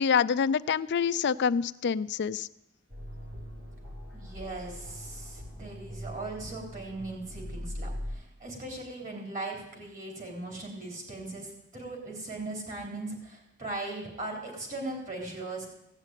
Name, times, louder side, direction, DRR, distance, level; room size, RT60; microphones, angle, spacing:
voice 1, 0.0-2.5, left 6 dB, 55° left, 14 dB, 0.4 m, -26 dB
sound 1, 2.9-8.1, equal, 60° right, 4.8 m, -41 dB
voice 2, 4.1-15.7, right 2 dB, 40° right, 0 dB, 3.7 m, -39 dB
16.0 x 6.4 x 9.1 m, 0.84 s
head